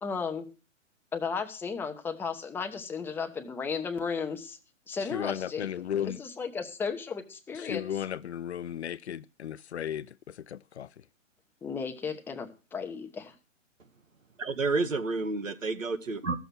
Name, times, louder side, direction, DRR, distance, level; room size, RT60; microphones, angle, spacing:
voice 1, 0.0-0.5 1.1-4.6 4.9-5.7 6.0-8.0 11.6-13.3, left 5 dB, 5° left, 0.7 m, -34 dB
voice 2, 5.1-6.2 7.6-10.9, left 10 dB, 60° left, 0.6 m, -35 dB
voice 3, 14.4-16.4, right 3 dB, 85° right, 1.6 m, -30 dB
15.0 x 6.9 x 6.0 m
figure-of-eight pair, 130°, 38 cm